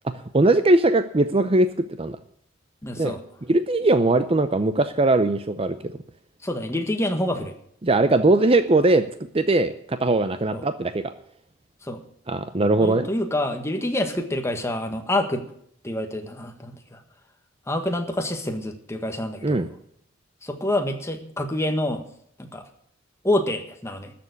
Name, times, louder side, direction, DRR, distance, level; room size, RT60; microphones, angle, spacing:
voice 1, 0.3-1.7 2.0-2.2 3.0-3.1 3.5-5.9 7.8-9.0 9.3-11.1 12.3-13.1 19.4-19.7, right 2 dB, 30° right, 11 dB, 0.6 m, -20 dB
voice 2, 2.8-3.2 6.4-7.5 10.5-10.6 11.8-12.0 12.8-15.4 15.8-17.0 17.7-19.6 20.4-22.0 22.4-22.6 23.2-24.1, left 1 dB, 15° left, 5 dB, 1.6 m, -27 dB
13.5 x 7.0 x 9.7 m, 0.67 s
head